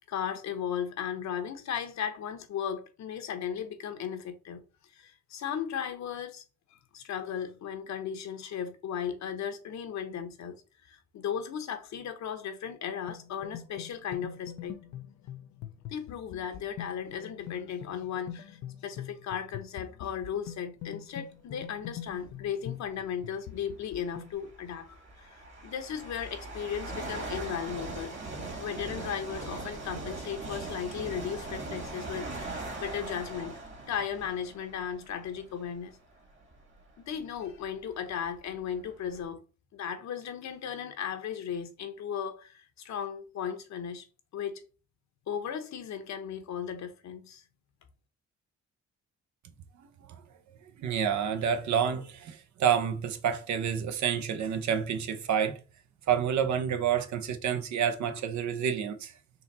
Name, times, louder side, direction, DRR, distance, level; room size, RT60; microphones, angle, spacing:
voice 1, 0.1-4.6 4.9-6.4 6.9-10.6 10.9-14.8 15.9-28.1 28.6-33.6 33.9-36.0 37.0-39.4 39.7-44.0 44.3-44.6 45.3-47.4, left 8 dB, 65° left, 0.9 m, -36 dB
sound 1, 13.1-24.3, left 10 dB, 80° left, 0.6 m, -44 dB
sound 2, 22.1-22.4 23.5-23.6 24.4-35.8 36.4-36.6 37.4-37.5 37.7-39.2, right 2 dB, 40° right, 1.8 m, -40 dB
voice 2, 50.8-55.6 56.1-59.1, right 8 dB, 70° right, 0.8 m, -28 dB
3.9 x 2.9 x 4.1 m
cardioid pair, 90°, 30 cm